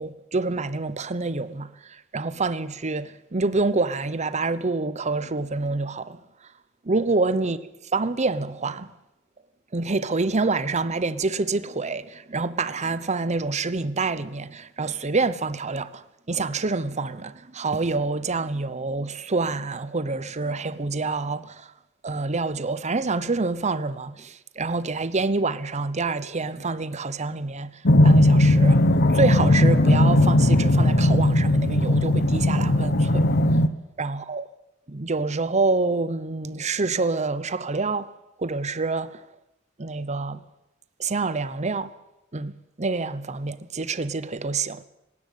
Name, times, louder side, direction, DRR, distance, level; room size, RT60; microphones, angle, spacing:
voice 1, 0.0-6.2 6.8-7.6 7.9-8.9 9.7-21.7 22.0-27.7 28.0-28.8 29.1-33.2 34.0-34.5 34.9-38.1 38.4-39.2 39.8-40.4 41.0-41.9 42.3-42.5 42.8-44.8, right 3 dB, 35° right, 0.9 m, -27 dB
sound 1, 27.9-33.7, left 1 dB, 55° left, 1.2 m, -18 dB
19.5 x 17.0 x 9.3 m
head